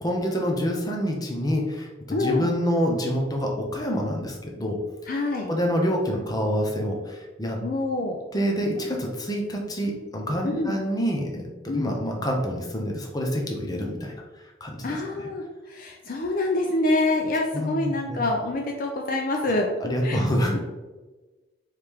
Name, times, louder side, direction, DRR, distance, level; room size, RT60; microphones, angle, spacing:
voice 1, 0.0-4.8 5.5-7.6 8.3-14.1 14.6-15.3 17.5-18.2 19.8-20.6, equal, 20° left, 1 dB, 0.7 m, -27 dB
voice 2, 2.1-2.6 5.1-5.5 7.6-8.2 10.4-10.7 11.7-12.0 14.8-20.2 20.5-20.6, left 2 dB, 45° left, 1 dB, 0.4 m, -26 dB
4.6 x 3.3 x 3.5 m, 1.2 s
head